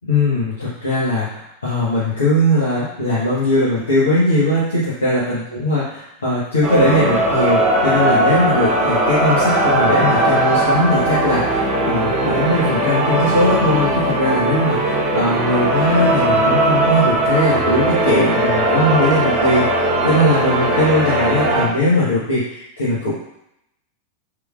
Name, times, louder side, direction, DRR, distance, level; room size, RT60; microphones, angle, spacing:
voice 1, 0.1-23.1, left 1 dB, 70° left, -10 dB, 1.2 m, -19 dB
sound 1, 6.6-21.7, right 1 dB, 35° right, 1.0 m, -18 dB
5.0 x 3.1 x 2.4 m, 0.80 s
figure-of-eight pair, 90°, 0 cm